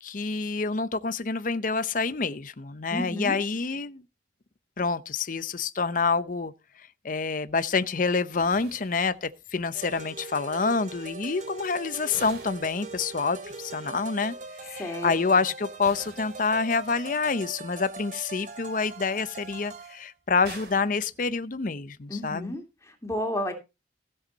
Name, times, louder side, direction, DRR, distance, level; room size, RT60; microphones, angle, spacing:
voice 1, 0.0-4.0 4.8-6.5 7.0-14.4 14.6-22.5, left 4 dB, 45° left, 0.7 m, -27 dB
voice 2, 2.9-3.4 14.8-15.2 22.1-23.5, left 1 dB, 15° left, 2.6 m, -32 dB
sound 1, 8.4-9.7 12.1-13.5 15.8-17.0 20.4-21.8, right 4 dB, 60° right, 2.9 m, -48 dB
sound 2, 9.7-20.0, right 3 dB, 45° right, 2.6 m, -41 dB
16.0 x 7.9 x 4.0 m
head